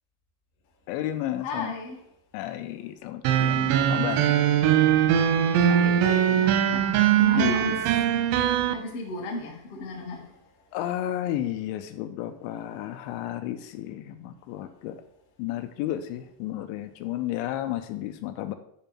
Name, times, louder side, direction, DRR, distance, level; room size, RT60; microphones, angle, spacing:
voice 1, 0.9-1.7 2.3-4.3 7.3-7.8 10.7-15.0 15.4-18.6, left 13 dB, 85° left, 9 dB, 2.8 m, -32 dB
voice 2, 1.4-2.0 5.6-7.9 8.7-10.3, left 3 dB, 60° left, -2 dB, 1.6 m, -36 dB
sound 1, 3.2-8.7, right 10 dB, 85° right, 3.0 m, -21 dB
10.5 x 5.3 x 4.3 m, 0.74 s
omnidirectional pair, 5.3 m